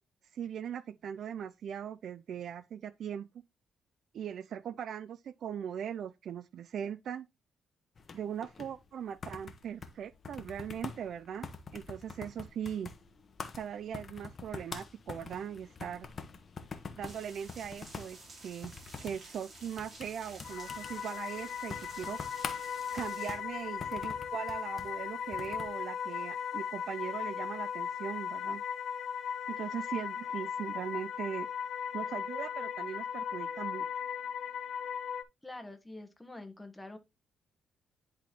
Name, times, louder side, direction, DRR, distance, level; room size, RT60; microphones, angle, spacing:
voice 1, 0.3-3.3 4.1-7.3 8.1-12.9 13.6-16.1 17.0-18.2 18.4-18.7 19.0-22.2 22.9-28.6 29.5-31.5 31.9-33.9, right 8 dB, 60° right, 0.4 m, -40 dB
sound 1, 8.0-25.8, left 5 dB, 40° left, 0.9 m, -46 dB
sound 2, 17.0-23.4, right 2 dB, 35° right, 2.7 m, -52 dB
sound 3, 20.4-35.2, left 8 dB, 55° left, 0.6 m, -37 dB
voice 2, 35.4-37.0, left 2 dB, 10° left, 1.1 m, -46 dB
10.5 x 3.8 x 3.0 m
cardioid pair, 125°, 0 cm